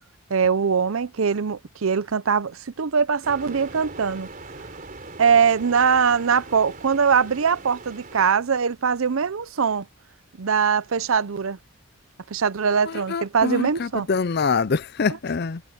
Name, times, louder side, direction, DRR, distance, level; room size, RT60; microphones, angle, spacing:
voice 1, 0.3-4.3 5.2-9.9 10.4-11.6 12.3-14.1, right 6 dB, 75° right, 0.6 m, -22 dB
sound 1, 3.2-8.3, right 3 dB, 40° right, 3.9 m, -41 dB
voice 2, 12.9-15.6, left 5 dB, 50° left, 0.5 m, -25 dB
head